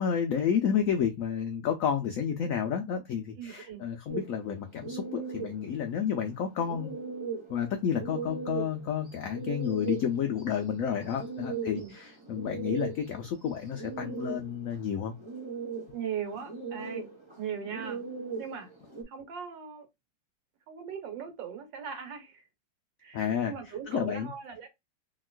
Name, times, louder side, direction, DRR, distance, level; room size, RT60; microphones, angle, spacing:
voice 1, 0.0-6.9 7.5-15.1 23.1-23.5 23.9-24.3, left 8 dB, 80° left, 0.7 m, -30 dB
voice 2, 3.4-3.8 11.5-11.9 15.9-17.1 17.4-18.0 18.4-18.7 19.1-19.9 20.7-22.4 23.0-24.7, right 7 dB, 80° right, 1.6 m, -39 dB
sound 1, 4.1-19.0, right 5 dB, 30° right, 0.5 m, -39 dB
2.9 x 2.9 x 2.3 m
omnidirectional pair, 2.0 m